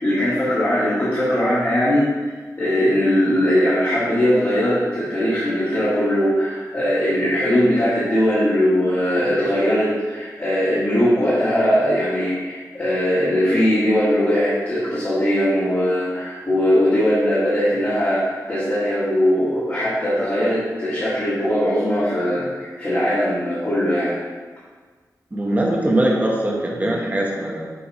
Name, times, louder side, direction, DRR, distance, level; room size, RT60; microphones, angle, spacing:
voice 1, 0.0-2.3 2.6-24.1, equal, 35° left, -12 dB, 1.9 m, -20 dB
voice 2, 25.3-27.7, right 1 dB, 25° right, -2 dB, 1.1 m, -21 dB
7.2 x 3.6 x 4.3 m, 1.4 s
wide cardioid pair, 135°, 7 cm